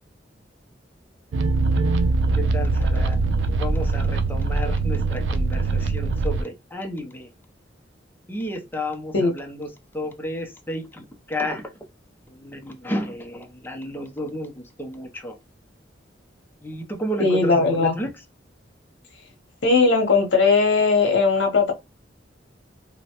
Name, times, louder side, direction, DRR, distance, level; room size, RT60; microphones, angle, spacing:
sound 1, 1.3-6.4, right 3 dB, 75° right, 0.5 m, -22 dB
voice 1, 2.3-3.2 3.6-7.3 8.3-11.6 12.3-15.4 16.6-18.1, equal, 10° left, 0.6 m, -32 dB
voice 2, 17.2-17.9 19.6-21.7, left 4 dB, 70° left, 0.8 m, -18 dB
3.0 x 2.2 x 2.8 m
head